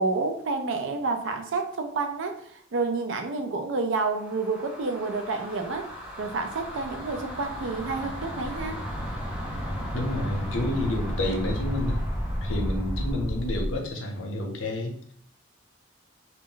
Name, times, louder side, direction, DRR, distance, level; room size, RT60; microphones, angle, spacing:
voice 1, 0.0-5.9 6.2-8.8, right 3 dB, 75° right, 6 dB, 0.4 m, -29 dB
sound 1, 4.1-13.8, equal, 5° right, 0.6 m, -33 dB
voice 2, 9.9-12.0 12.4-15.1, left 1 dB, 80° left, 2 dB, 0.6 m, -29 dB
2.3 x 2.0 x 3.8 m, 0.65 s
head